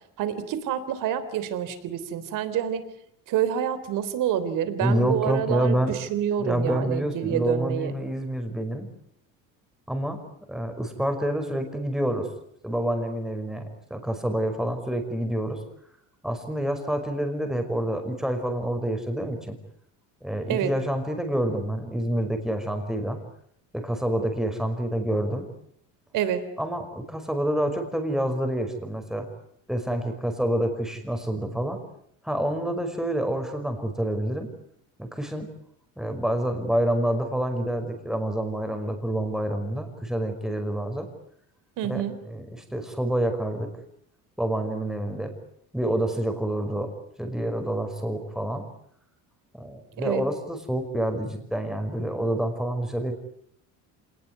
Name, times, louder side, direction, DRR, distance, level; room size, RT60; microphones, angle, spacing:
voice 1, 0.2-2.8 3.3-7.9 20.5-20.7 26.1-26.4 41.8-42.1 50.0-50.2, right 9 dB, 65° right, 13 dB, 3.5 m, -27 dB
voice 2, 4.8-5.9 6.4-8.9 9.9-10.2 10.5-12.3 12.6-15.6 16.2-19.6 20.2-23.2 23.7-25.5 26.6-29.3 29.7-31.8 32.2-34.5 35.0-35.5 36.0-41.1 41.8-43.7 44.4-45.3 45.7-46.9 47.2-48.7 49.6-53.1, right 1 dB, ahead, 6 dB, 5.4 m, -27 dB
26.5 x 20.0 x 9.7 m, 0.71 s
cardioid pair, 125°, 34 cm